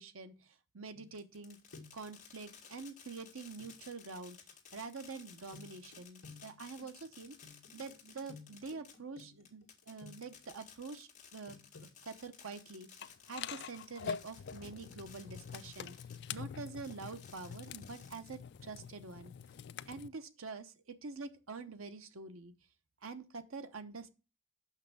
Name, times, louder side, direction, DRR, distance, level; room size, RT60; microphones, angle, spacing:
voice 1, 0.0-1.6 1.9-4.4 4.7-7.4 7.7-16.0 16.3-19.3 19.8-22.5 23.0-24.1, right 4 dB, 80° right, 0.9 m, -46 dB
sound 1, 0.9-1.4 1.7-2.1 3.6-3.7 5.5-10.5 11.5-11.9, left 4 dB, 70° left, 1.5 m, -56 dB
Fireworks, 1.2-16.4 16.8-18.6, left 7 dB, 35° left, 1.9 m, -57 dB
sound 2, 13.0-20.1, left 6 dB, 55° left, 0.3 m, -45 dB
6.1 x 5.7 x 7.0 m
head